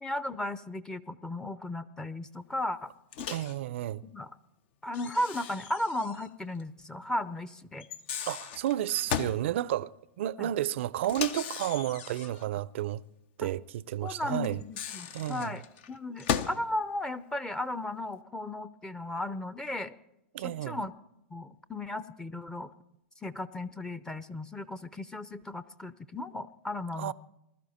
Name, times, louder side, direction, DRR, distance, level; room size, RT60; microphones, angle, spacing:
voice 1, 0.0-2.9 4.0-4.3 4.8-7.9 10.4-10.5 13.4-13.5 14.0-15.6 15.9-20.0 20.4-20.9 21.3-22.7 23.2-27.1, left 1 dB, 10° left, 0.6 m, -35 dB
Microwave oven, 3.1-3.6 4.9-6.3 6.6-6.7 7.8-9.4 11.0-12.5 14.4-16.6, left 8 dB, 55° left, 0.8 m, -36 dB
voice 2, 3.3-4.0 8.3-13.0 13.4-14.6 15.1-15.5 20.3-20.8 27.0-27.1, right 13 dB, 65° right, 0.5 m, -32 dB
20.5 x 12.5 x 4.3 m
hypercardioid pair, 105°, 7 cm